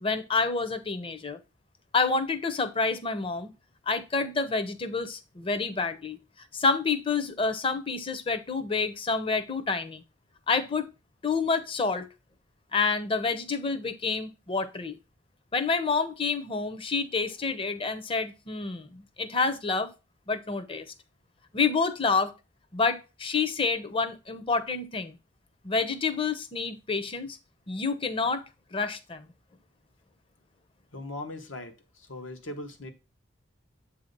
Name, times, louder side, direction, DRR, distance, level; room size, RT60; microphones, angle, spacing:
voice 1, 0.0-1.4 1.9-3.5 3.9-10.0 10.5-10.9 11.2-12.1 12.7-15.0 15.5-19.9 20.3-20.9 21.5-22.3 22.7-25.2 25.6-27.4 27.7-28.4 28.7-29.3, left 4 dB, 25° left, 0.6 m, -28 dB
voice 2, 30.9-32.9, left 2 dB, 80° left, 1.1 m, -39 dB
7.7 x 2.8 x 5.2 m
head